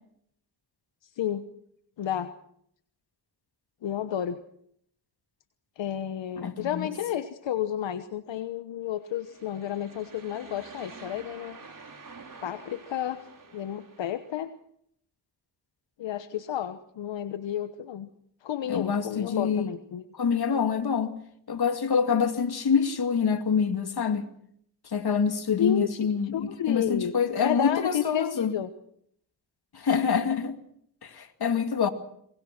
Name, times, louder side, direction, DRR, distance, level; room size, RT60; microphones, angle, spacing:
voice 1, 1.0-1.4 2.0-2.3 3.8-4.4 5.8-11.6 12.4-13.2 13.5-14.5 16.0-18.1 18.4-20.0 25.6-26.0 26.3-27.1 27.4-28.7, left 10 dB, 80° left, 1.1 m, -31 dB
voice 2, 6.4-6.9 18.6-19.6 20.1-21.2 21.5-24.3 24.9-28.6 29.7-30.6 31.0-31.9, left 6 dB, 60° left, 2.3 m, -26 dB
sound 1, 9.0-14.4, right 4 dB, 45° right, 5.2 m, -48 dB
23.5 x 21.0 x 6.0 m
cardioid pair, 60°, 44 cm